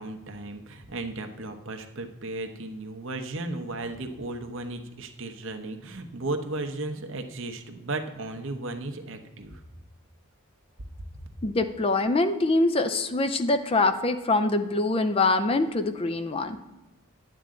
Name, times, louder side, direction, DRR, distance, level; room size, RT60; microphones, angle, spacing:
voice 1, 0.0-9.6, right 2 dB, 65° right, 5 dB, 1.0 m, -35 dB
voice 2, 11.4-16.6, left 2 dB, 25° left, 10 dB, 0.4 m, -24 dB
10.5 x 9.0 x 3.8 m, 1.0 s
head